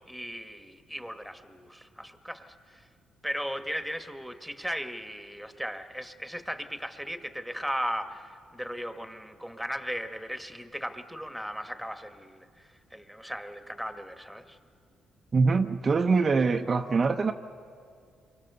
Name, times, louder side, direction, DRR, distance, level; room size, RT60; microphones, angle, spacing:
voice 1, 0.1-2.8 3.2-14.6, equal, ahead, 8 dB, 1.4 m, -37 dB
voice 2, 15.3-17.3, right 4 dB, 40° right, 5 dB, 0.7 m, -24 dB
28.5 x 24.0 x 6.8 m, 2.3 s
cardioid pair, 90°, 0 cm